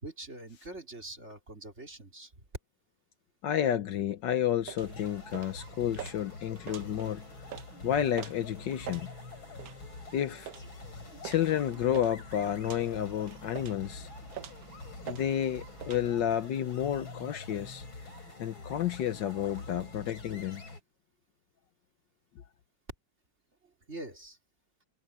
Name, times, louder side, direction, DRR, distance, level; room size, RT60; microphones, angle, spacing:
voice 1, 0.0-2.4 23.9-24.4, right 2 dB, 35° right, 3.6 m, -44 dB
voice 2, 3.4-7.3 7.8-9.1 10.1-10.5 11.2-14.1 15.1-17.8 18.4-20.6, left 10 dB, 70° left, 1.5 m, -31 dB
sound 1, 4.6-16.0, right 10 dB, 60° right, 1.1 m, -47 dB
sound 2, 4.8-20.8, left 3 dB, 85° left, 6.4 m, -46 dB
omnidirectional pair, 2.1 m